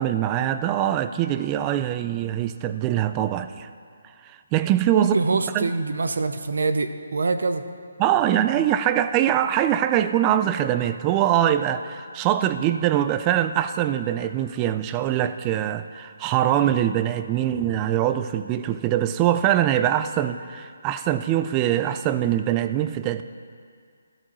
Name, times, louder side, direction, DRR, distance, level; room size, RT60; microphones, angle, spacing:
voice 1, 0.0-3.7 4.5-5.1 5.5-5.7 8.0-23.2, right 11 dB, 20° right, 11 dB, 0.3 m, -23 dB
voice 2, 4.9-7.6, right 3 dB, 75° right, 10 dB, 0.7 m, -25 dB
13.0 x 13.0 x 3.1 m, 2.2 s
hypercardioid pair, 160°, 0 cm